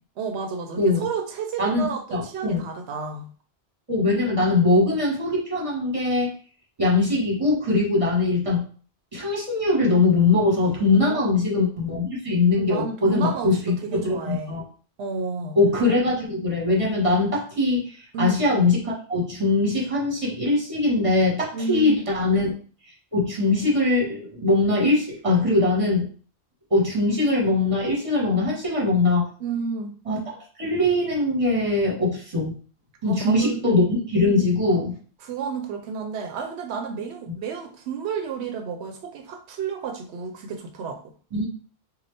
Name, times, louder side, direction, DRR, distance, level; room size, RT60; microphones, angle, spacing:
voice 1, 0.2-3.3 11.0-11.2 12.5-14.6 15.0-15.6 18.1-18.4 21.5-22.0 29.4-30.0 33.1-33.6 35.2-41.1, right 5 dB, 90° right, 4 dB, 0.8 m, -31 dB
voice 2, 2.1-2.6 3.9-6.3 6.8-8.6 9.1-13.7 14.2-14.6 15.5-22.5 23.1-26.0 26.7-29.2 30.1-30.2 30.6-32.5 33.0-34.9 41.3-41.5, left 2 dB, 30° right, -4 dB, 1.5 m, -21 dB
4.0 x 2.3 x 3.3 m, 0.41 s
omnidirectional pair, 1.1 m